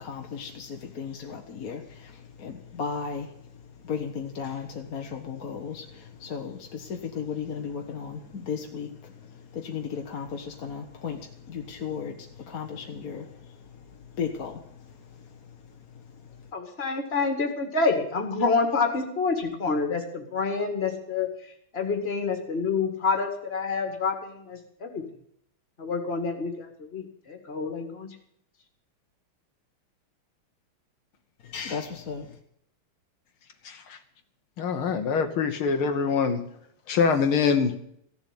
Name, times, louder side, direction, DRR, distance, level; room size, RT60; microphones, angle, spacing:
voice 1, 0.0-16.5 31.4-32.4, left 6 dB, 50° left, 3 dB, 1.4 m, -36 dB
voice 2, 16.5-21.3 21.7-25.0 25.8-28.1, left 4 dB, 30° left, 4 dB, 2.2 m, -28 dB
voice 3, 34.6-36.4 36.9-37.7, left 5 dB, 70° left, 7 dB, 1.9 m, -24 dB
15.5 x 7.2 x 9.7 m, 0.68 s
omnidirectional pair, 2.4 m